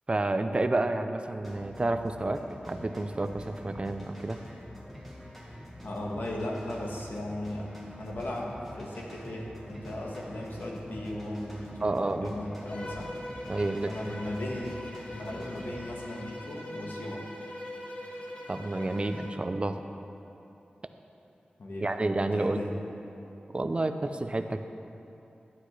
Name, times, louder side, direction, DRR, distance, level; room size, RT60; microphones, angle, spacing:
voice 1, 0.1-4.4 11.8-12.3 13.5-13.9 18.5-19.8 21.8-22.7 23.5-24.6, right 2 dB, 35° right, 8 dB, 0.5 m, -30 dB
sound 1, 1.3-15.8, equal, 5° left, 2.0 m, -46 dB
voice 2, 5.8-13.1 13.8-14.8 15.1-17.3 21.6-21.9 22.2-22.7, left 1 dB, 80° left, -2 dB, 1.3 m, -37 dB
Bowed string instrument, 12.7-19.4, left 1 dB, 40° left, 1.2 m, -42 dB
11.5 x 9.9 x 3.2 m, 2.9 s
wide cardioid pair, 80°, 3 cm